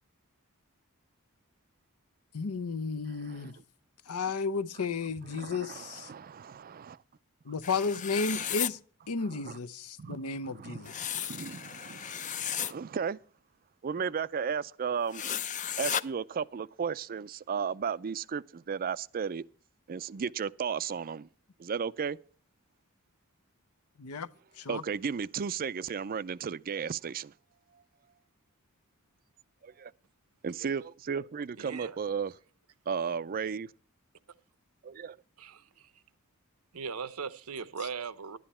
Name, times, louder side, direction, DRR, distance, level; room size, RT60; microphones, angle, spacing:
voice 1, 2.3-3.6 4.1-6.1 7.4-8.8 9.1-11.2 24.0-24.3 24.6-24.8, left 4 dB, 80° left, 0.7 m, -33 dB
voice 2, 5.3-7.0 8.3-8.4 9.3-9.4 10.0-10.2 10.5-13.2 13.8-15.2 15.8-19.4 19.9-21.3 21.6-22.2 24.7-27.3 29.6-29.9 30.4-32.4 32.9-33.7 34.8-35.2, right 6 dB, 40° right, 0.4 m, -34 dB
sound 1, 7.6-8.7 10.9-12.7 15.1-16.0, left 9 dB, 35° left, 0.5 m, -34 dB
voice 3, 31.6-32.0 35.4-35.9 36.7-38.4, right 5 dB, 75° right, 0.8 m, -39 dB
11.5 x 11.0 x 4.2 m
head